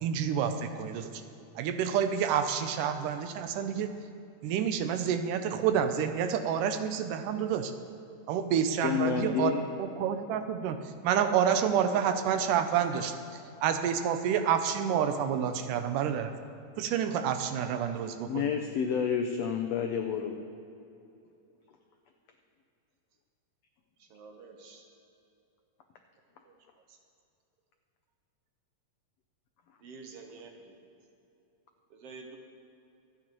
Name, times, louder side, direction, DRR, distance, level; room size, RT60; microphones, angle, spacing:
voice 1, 0.0-1.1 1.6-3.9 4.4-7.7 8.3-9.5 9.8-10.8 11.0-13.1 13.6-16.3 16.8-18.5, right 8 dB, 80° right, 8 dB, 2.2 m, -28 dB
voice 2, 8.8-9.6 18.3-20.4, left 7 dB, 85° left, 3 dB, 1.4 m, -29 dB
voice 3, 24.1-24.8 26.4-26.6 26.9-27.0 29.8-30.7 31.9-32.4, right 4 dB, 65° right, 3 dB, 1.6 m, -48 dB
26.0 x 8.8 x 3.1 m, 2.7 s
omnidirectional pair, 3.7 m